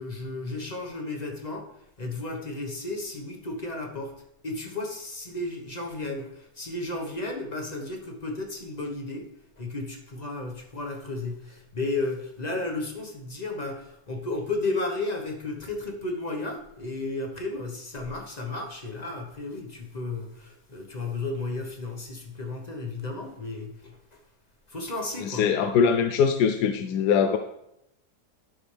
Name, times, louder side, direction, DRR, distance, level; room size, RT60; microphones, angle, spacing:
voice 1, 0.0-24.2 24.7-25.5, left 2 dB, 30° left, 2 dB, 1.1 m, -33 dB
voice 2, 25.2-27.4, left 7 dB, 80° left, 7 dB, 1.2 m, -22 dB
11.0 x 6.1 x 3.3 m, 0.81 s
omnidirectional pair, 1.7 m